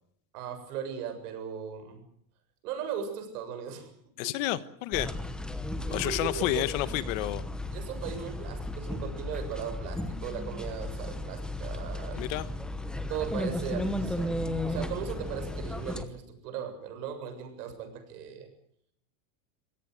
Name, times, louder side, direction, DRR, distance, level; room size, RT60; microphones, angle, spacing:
voice 1, 0.3-2.0 2.6-3.9 4.2-4.3 5.8-6.6 7.7-12.2 13.1-18.5, right 8 dB, 65° right, 7 dB, 7.4 m, -38 dB
voice 2, 4.2-5.1 5.9-7.4 12.1-12.5, left 16 dB, 50° left, 14 dB, 1.4 m, -30 dB
sound 1, 4.9-16.0, left 1 dB, ahead, 1.0 m, -35 dB
26.5 x 18.0 x 7.9 m, 0.70 s
supercardioid pair, 170°, 49 cm